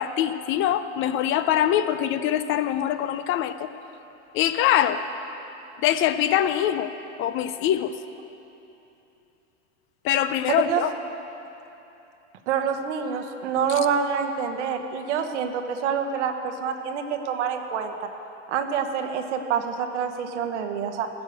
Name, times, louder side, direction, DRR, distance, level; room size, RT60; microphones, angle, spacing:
voice 1, 0.0-3.7 4.3-5.0 5.8-6.9 7.2-7.9 10.0-10.9, left 11 dB, 35° left, 11 dB, 0.5 m, -23 dB
voice 2, 12.5-17.9 18.5-21.1, right 7 dB, 75° right, 6 dB, 1.2 m, -27 dB
15.0 x 6.4 x 7.9 m, 2.9 s
supercardioid pair, 115°, 36 cm